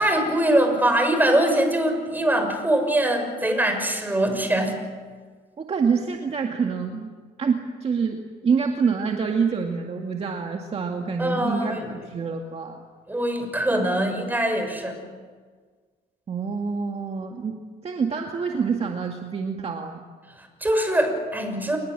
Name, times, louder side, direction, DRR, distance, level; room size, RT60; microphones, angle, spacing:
voice 1, 0.0-4.8 11.2-11.9 13.1-15.0 20.4-21.8, right 1 dB, 10° right, 5 dB, 6.3 m, -23 dB
voice 2, 5.6-7.1 7.4-12.8 16.3-17.6 17.8-20.0, right 5 dB, 35° right, 3 dB, 2.1 m, -26 dB
29.0 x 21.0 x 7.7 m, 1.5 s
cardioid pair, 110°, 17 cm